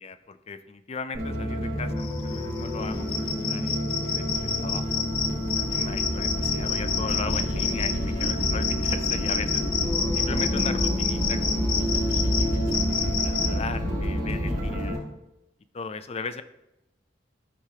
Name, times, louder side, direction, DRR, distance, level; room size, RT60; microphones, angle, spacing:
voice 1, 0.0-5.0 5.6-15.0 15.7-16.4, left 4 dB, 35° left, 9 dB, 0.5 m, -38 dB
sound 1, 1.1-15.0, equal, 50° right, 2.8 m, -31 dB
sound 2, 2.0-13.5, left 7 dB, 55° left, 0.8 m, -29 dB
sound 3, 4.5-14.9, equal, 85° left, 1.2 m, -30 dB
13.5 x 4.8 x 2.9 m, 0.90 s
head